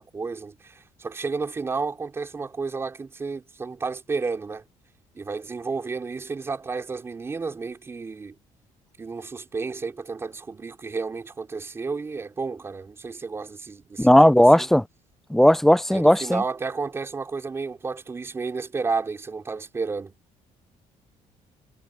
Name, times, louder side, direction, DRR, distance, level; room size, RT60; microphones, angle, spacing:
voice 1, 0.0-4.6 5.1-8.4 9.0-14.7 15.9-20.2, right 4 dB, 20° right, 4.5 m, -32 dB
voice 2, 14.0-14.8 15.3-16.4, equal, 5° left, 0.4 m, -16 dB
cardioid pair, 180°, 13 cm